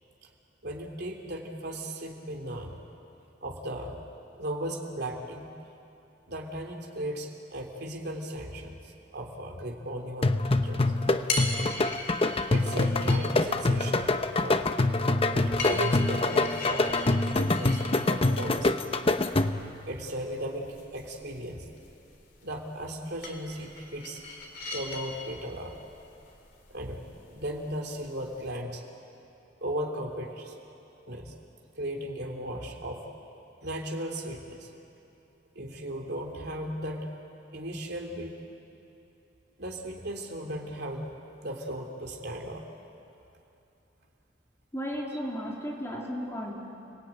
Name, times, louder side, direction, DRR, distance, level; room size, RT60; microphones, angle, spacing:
voice 1, 0.6-2.8 3.4-4.0 4.3-5.5 6.3-10.9 12.5-14.1 14.4-14.7 15.3-18.8 19.9-21.7 22.4-24.2 24.7-25.8 26.7-27.0 27.3-28.8 29.6-30.5 31.1-31.3 31.7-33.1 33.6-34.7 35.5-37.1 37.5-38.3 39.6-41.1 41.4-42.7 45.1-45.2, right 1 dB, 60° right, 1 dB, 3.3 m, -36 dB
sound 1, 10.2-19.8, left 2 dB, 30° left, 0.8 m, -25 dB
sound 2, 11.0-28.5, left 3 dB, 60° left, 3.5 m, -41 dB
voice 2, 44.7-46.5, equal, 15° left, -3 dB, 3.2 m, -34 dB
30.0 x 20.0 x 9.1 m, 2.8 s
head